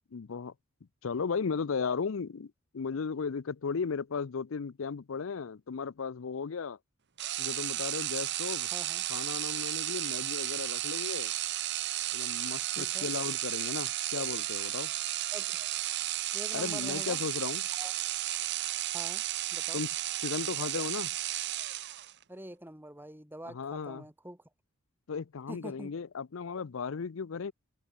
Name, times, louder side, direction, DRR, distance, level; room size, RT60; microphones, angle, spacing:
voice 1, 0.1-0.5 1.0-6.8 7.4-8.7 9.1-11.3 12.1-14.9 16.5-17.6 19.7-19.9 20.2-21.1 23.5-24.0 25.1-27.5, left 5 dB, 70° left, 0.5 m, -35 dB
sound 1, 7.2-22.2, right 14 dB, 55° right, 0.9 m, -33 dB
voice 2, 8.7-9.1 12.8-13.1 15.3-15.7 16.3-17.2 17.7-17.9 18.9-19.2 19.5-19.8 22.3-24.4 25.5-26.0, right 1 dB, 10° right, 3.8 m, -45 dB
head